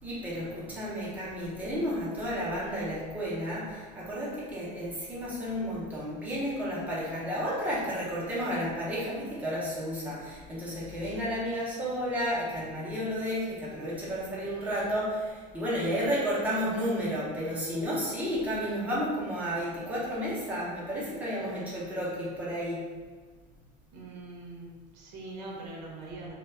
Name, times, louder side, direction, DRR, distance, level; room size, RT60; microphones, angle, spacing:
voice 1, 0.0-22.8, equal, 5° right, -7 dB, 0.5 m, -32 dB
voice 2, 23.9-26.4, right 2 dB, 90° right, -2 dB, 0.7 m, -42 dB
2.2 x 2.1 x 3.3 m, 1.4 s
supercardioid pair, 165°, 21 cm